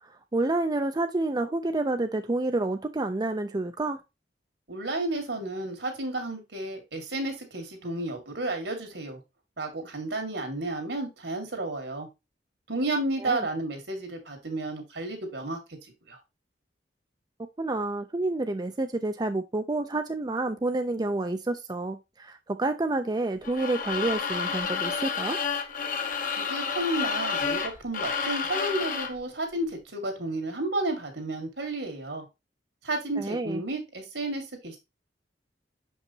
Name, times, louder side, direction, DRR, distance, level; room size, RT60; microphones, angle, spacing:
voice 1, 0.0-4.0 13.2-13.5 17.6-25.4 33.2-33.6, right 2 dB, 25° right, 0.5 m, -29 dB
voice 2, 4.7-9.2 9.6-12.1 12.7-15.8 16.1-16.2 26.4-32.3 32.8-34.8, right 2 dB, 80° right, 2.2 m, -32 dB
sound 1, 23.4-29.2, left 6 dB, 50° left, 1.0 m, -30 dB
6.4 x 5.4 x 2.8 m
head